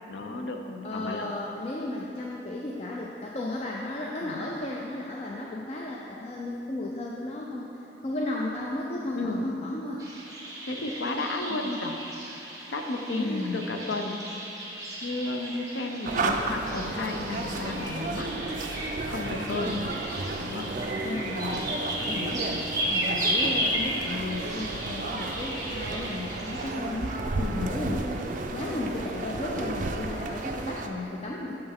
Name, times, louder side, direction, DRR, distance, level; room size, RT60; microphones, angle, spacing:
voice 1, 0.1-1.3 4.2-4.4 9.1-9.4 10.6-12.0 12.3-12.4 12.7-14.2 15.0-18.3 18.7-19.8 20.4-20.7 27.4-27.7, left 2 dB, 85° left, 4 dB, 0.6 m, -33 dB
voice 2, 0.8-10.1 11.5-11.7 13.1-13.7 19.6-19.9 21.0-21.7 22.1-27.2 27.5-31.6, left 2 dB, 35° left, -2 dB, 0.4 m, -34 dB
sound 1, 10.0-26.6, right 1 dB, 20° right, 1.0 m, -34 dB
sound 2, 16.0-30.9, right 2 dB, 45° right, 0.4 m, -33 dB
6.9 x 5.5 x 3.5 m, 2.9 s
head